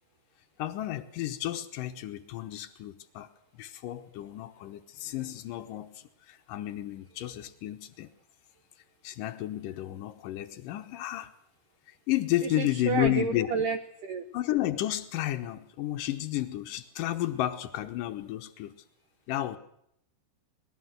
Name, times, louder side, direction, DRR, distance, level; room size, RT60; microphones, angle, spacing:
voice 1, 0.6-3.3 3.6-8.1 9.0-11.3 11.9-13.5 14.3-18.8 19.3-19.6, left 14 dB, 85° left, 8 dB, 1.9 m, -32 dB
voice 2, 12.4-14.2, right 5 dB, 85° right, 8 dB, 1.8 m, -31 dB
21.5 x 17.5 x 7.9 m, 0.75 s
omnidirectional pair, 5.1 m